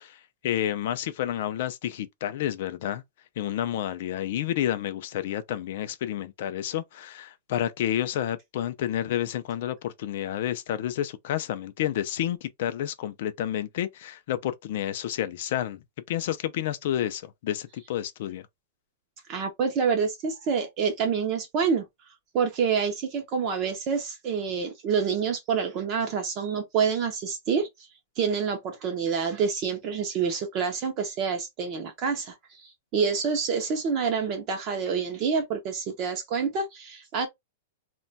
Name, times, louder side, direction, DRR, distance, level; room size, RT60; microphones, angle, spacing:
voice 1, 0.0-3.0 3.4-15.8 16.1-18.5, left 11 dB, 50° left, 0.3 m, -30 dB
voice 2, 19.3-21.8 22.3-27.7 28.2-37.3, right 6 dB, 25° right, 0.5 m, -27 dB
2.2 x 2.2 x 3.9 m
supercardioid pair, 170°, 0 cm